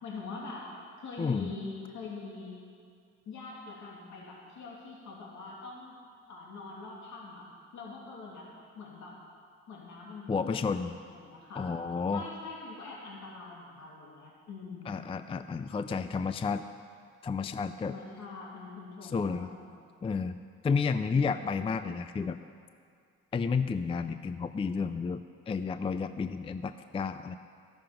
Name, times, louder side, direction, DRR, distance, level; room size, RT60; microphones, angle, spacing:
voice 1, 0.0-0.7 1.0-2.6 3.3-6.0 6.3-7.5 7.7-8.5 8.7-9.2 9.7-10.8 11.1-11.6 12.1-15.0 17.8-19.7, left 4 dB, 70° left, -4 dB, 2.8 m, -44 dB
voice 2, 1.2-1.5 10.3-10.9 11.6-12.3 14.9-16.6 17.2-17.9 19.0-19.5 20.0-20.4 20.6-22.4 23.3-27.4, left 5 dB, 20° left, 10 dB, 0.4 m, -31 dB
13.0 x 11.5 x 5.1 m, 2.3 s
cardioid pair, 90°, 30 cm